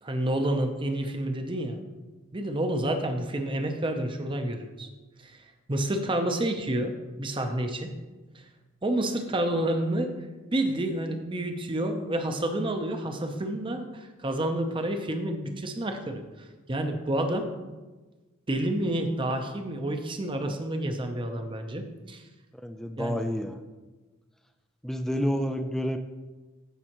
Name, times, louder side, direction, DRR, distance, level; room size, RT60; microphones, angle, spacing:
voice 1, 0.0-1.8 2.3-4.9 5.2-5.4 5.7-7.9 8.3-8.4 8.8-10.1 10.5-17.5 18.5-22.2 23.0-23.2, right 1 dB, 25° right, 6 dB, 0.7 m, -29 dB
voice 2, 22.5-23.6 24.8-26.0, equal, ahead, 5 dB, 0.3 m, -29 dB
15.0 x 5.5 x 3.0 m, 1.2 s
head